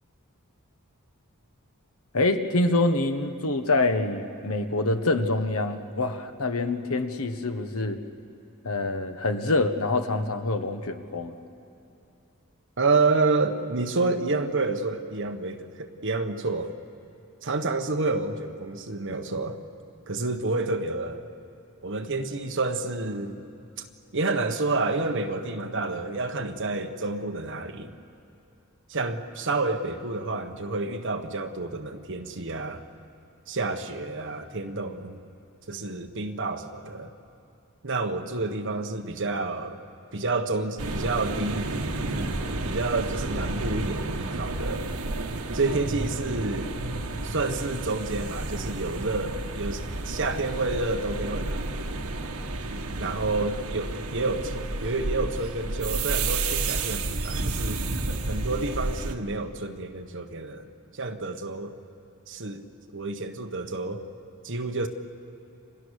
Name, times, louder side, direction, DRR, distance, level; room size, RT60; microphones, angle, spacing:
voice 1, 2.1-8.0 8.6-11.4, left 2 dB, 75° left, 7 dB, 1.4 m, -26 dB
voice 2, 12.8-16.7 17.4-19.6 20.1-21.2 21.8-23.4 24.1-27.9 28.9-32.8 33.5-35.1 35.7-37.1 37.8-39.8 40.1-41.7 42.6-45.0 45.5-46.8 47.2-51.7 53.0-57.8 58.3-61.8 62.3-62.6 62.9-64.0 64.4-64.9, right 3 dB, 60° right, 5 dB, 1.4 m, -29 dB
sound 1, 40.8-59.1, right 2 dB, 80° right, 1.5 m, -31 dB
30.0 x 25.0 x 6.6 m, 2.7 s
head